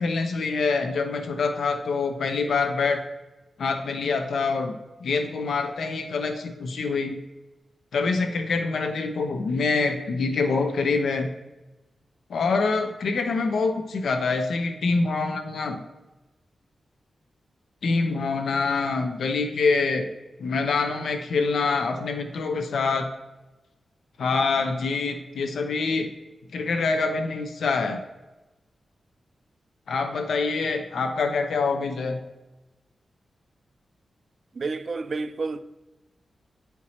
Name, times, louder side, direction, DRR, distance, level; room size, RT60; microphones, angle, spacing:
voice 1, 0.0-3.0 3.6-7.2 7.9-11.3 12.3-15.8 17.8-20.1 20.4-23.1 24.2-26.1 26.5-28.0 29.9-32.2, left 4 dB, 80° left, 0.7 m, -25 dB
voice 2, 34.5-35.6, right 3 dB, 45° right, 0.4 m, -30 dB
9.5 x 4.6 x 2.8 m
wide cardioid pair, 150°, 0 cm